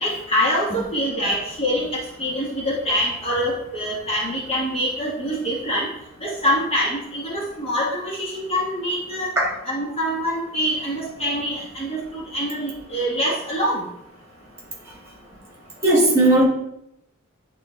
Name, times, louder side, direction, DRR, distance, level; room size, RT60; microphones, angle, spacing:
voice 1, 0.0-5.9 6.2-9.3 9.6-13.9, equal, 25° left, -4 dB, 1.2 m, -25 dB
voice 2, 15.8-16.4, right 1 dB, 15° right, -4 dB, 2.0 m, -16 dB
9.9 x 4.2 x 3.2 m, 0.80 s
head